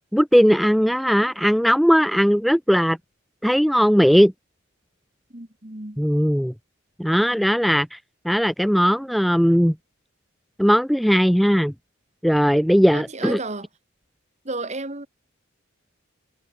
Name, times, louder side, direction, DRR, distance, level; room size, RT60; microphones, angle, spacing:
voice 1, 0.1-3.0 3.4-4.3 6.0-6.5 7.0-8.0 8.2-9.7 10.6-11.7 12.2-13.4, equal, ahead, 0.5 m, -18 dB
voice 2, 5.3-6.0 12.9-13.7 14.4-15.1, right 2 dB, 35° right, 2.4 m, -32 dB
head